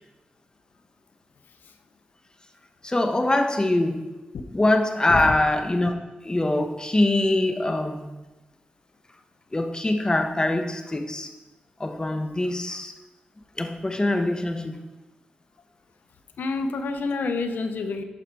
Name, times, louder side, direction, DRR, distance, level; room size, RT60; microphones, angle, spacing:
voice 1, 2.8-4.1 4.5-5.9 6.2-8.1 9.5-11.3 11.8-12.9 13.6-14.8, left 1 dB, 25° left, 5 dB, 1.0 m, -23 dB
voice 2, 16.4-18.0, left 3 dB, 90° left, 8 dB, 0.6 m, -28 dB
11.5 x 4.9 x 4.7 m, 1.1 s
cardioid pair, 60°, 3 cm